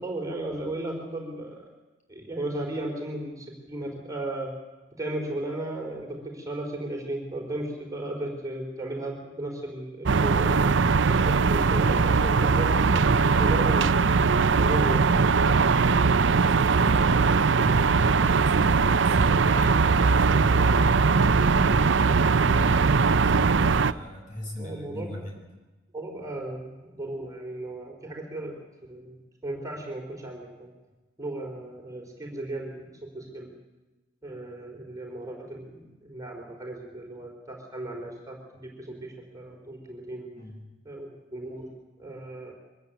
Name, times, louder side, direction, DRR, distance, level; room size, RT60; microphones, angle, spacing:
voice 1, 0.0-1.7 2.1-4.5 5.0-13.0 13.4-13.9 14.6-15.1 24.6-25.1 25.9-28.5 28.9-29.2 29.4-30.7 31.2-33.5 34.2-40.3 40.9-41.7 42.0-42.5, right 1 dB, 20° right, 0 dB, 3.8 m, -35 dB
sound 1, 10.1-23.9, right 4 dB, 65° right, 0.6 m, -21 dB
voice 2, 16.5-25.4 40.3-40.6, left 1 dB, 40° left, 0 dB, 6.5 m, -39 dB
23.5 x 15.0 x 9.1 m, 1.1 s
head